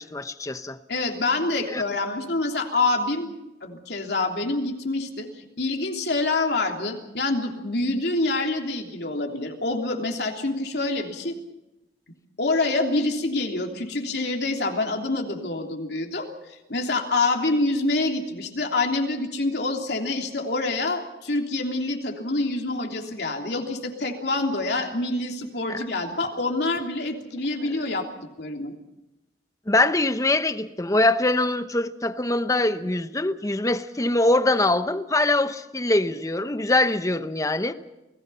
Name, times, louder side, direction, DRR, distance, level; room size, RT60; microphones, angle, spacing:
voice 1, 0.0-0.8 1.7-1.8 25.7-25.8 29.7-37.7, left 2 dB, 20° left, 11 dB, 1.0 m, -23 dB
voice 2, 0.9-3.3 3.6-5.3 5.6-11.3 12.4-28.1 28.4-28.7, left 2 dB, 70° left, 2 dB, 3.2 m, -26 dB
29.0 x 19.0 x 5.7 m, 0.97 s
head